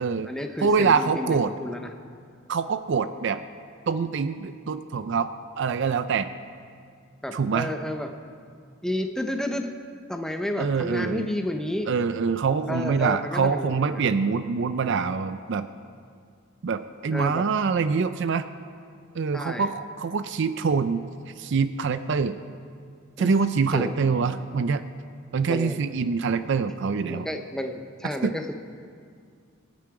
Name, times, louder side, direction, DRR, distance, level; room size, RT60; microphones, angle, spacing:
voice 1, 0.0-1.9 7.2-8.1 8.8-9.7 10.1-11.9 12.7-14.1 17.1-17.5 19.3-19.7 23.2-23.3 23.7-23.9 25.5-25.8 26.8-28.6, left 1 dB, 5° left, 5 dB, 0.6 m, -31 dB
voice 2, 0.6-1.5 2.5-3.4 3.9-5.3 5.6-6.3 7.3-7.7 10.6-11.3 11.9-15.7 16.6-18.4 19.1-21.0 21.4-22.4 23.2-24.8 25.3-27.3 28.2-28.3, right 5 dB, 55° right, 11 dB, 0.4 m, -25 dB
24.5 x 8.4 x 4.8 m, 2.2 s
head